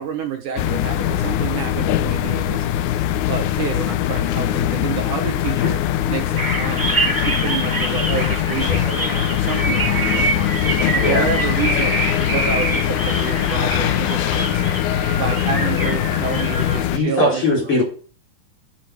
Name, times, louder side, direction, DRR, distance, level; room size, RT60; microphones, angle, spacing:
voice 1, 0.0-2.7 3.1-10.6 10.9-14.6 15.2-17.7, right 7 dB, 65° right, 5 dB, 2.6 m, -29 dB
sound 1, 0.6-17.0, left 11 dB, 75° left, 1.8 m, -21 dB
sound 2, 6.4-16.8, right 2 dB, 5° right, 2.2 m, -26 dB
voice 2, 16.9-17.8, left 1 dB, 35° left, -3 dB, 5.1 m, -19 dB
9.4 x 6.6 x 7.9 m, 0.41 s
omnidirectional pair, 4.1 m